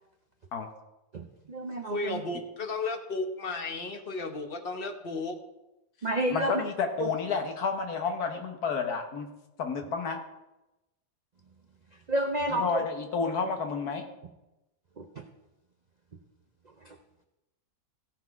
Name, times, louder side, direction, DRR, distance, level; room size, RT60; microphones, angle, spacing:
voice 1, 1.1-2.2 6.0-6.6 7.0-7.1 12.1-12.9 15.0-15.2 16.9-17.0, right 1 dB, 60° right, 5 dB, 0.4 m, -30 dB
voice 2, 1.8-5.3, left 3 dB, 40° left, 5 dB, 1.1 m, -34 dB
voice 3, 6.3-9.3 9.6-10.2 12.5-14.0, left 5 dB, 70° left, 5 dB, 1.7 m, -30 dB
15.5 x 5.9 x 4.7 m, 0.97 s
omnidirectional pair, 1.7 m